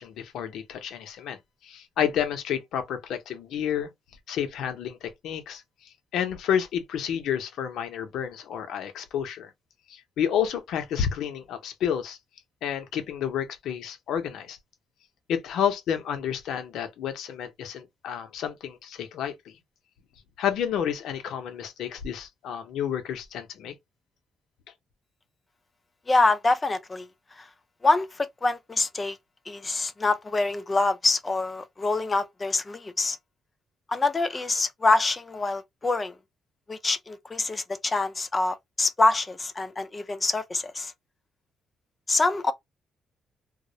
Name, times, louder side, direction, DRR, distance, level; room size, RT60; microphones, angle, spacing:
voice 1, 0.0-1.4 1.6-3.9 4.3-5.6 6.1-9.5 9.9-12.2 12.6-14.6 15.3-19.5 20.4-23.7, left 9 dB, 80° left, 0.5 m, -30 dB
voice 2, 26.1-27.1 27.3-27.5 27.8-29.2 29.5-33.2 33.9-36.2 36.7-40.9 42.1-42.5, left 3 dB, 25° left, 0.3 m, -25 dB
2.3 x 2.0 x 2.7 m
cardioid pair, 90°, 0 cm